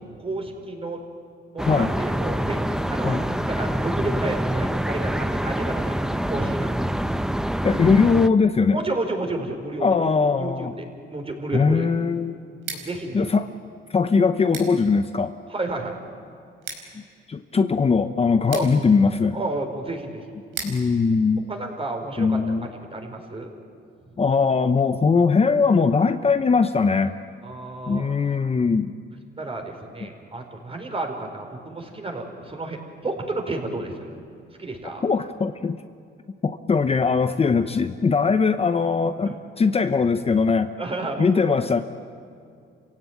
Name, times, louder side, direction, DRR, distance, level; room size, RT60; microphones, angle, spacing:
voice 1, 0.2-1.0 1.5-2.6 2.9-6.9 7.8-7.9 8.7-9.9 10.4-11.9 12.8-13.2 15.5-16.0 18.5-18.7 19.3-20.2 21.5-23.5 27.4-28.1 29.4-34.2 34.6-35.1 39.2-39.3 40.8-41.7, right 2 dB, 30° right, 3 dB, 4.7 m, -31 dB
sound 1, 1.6-8.3, equal, 5° right, 0.8 m, -26 dB
voice 2, 7.6-8.8 9.8-10.7 11.5-12.4 13.1-13.5 13.9-15.3 17.3-19.4 20.6-21.5 22.2-22.7 24.2-27.1 27.9-28.9 35.0-35.8 36.4-40.7 41.2-41.8, left 5 dB, 30° left, 9 dB, 0.9 m, -20 dB
Scissors, 12.5-22.3, right 5 dB, 80° right, 4.8 m, -42 dB
28.5 x 16.5 x 9.4 m, 2.4 s
cardioid pair, 90°, 20 cm